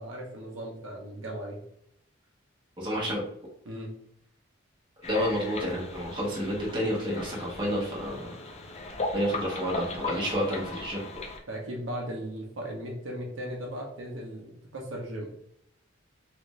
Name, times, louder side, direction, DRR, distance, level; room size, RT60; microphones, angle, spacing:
voice 1, 0.0-1.6 3.6-3.9 11.5-15.3, equal, 70° right, -1 dB, 0.8 m, -37 dB
voice 2, 2.8-3.2 5.1-8.3 9.1-11.0, equal, 25° right, -4 dB, 1.1 m, -30 dB
sound 1, 5.0-11.4, left 2 dB, 35° left, 0.5 m, -37 dB
3.3 x 2.5 x 3.1 m, 0.71 s
head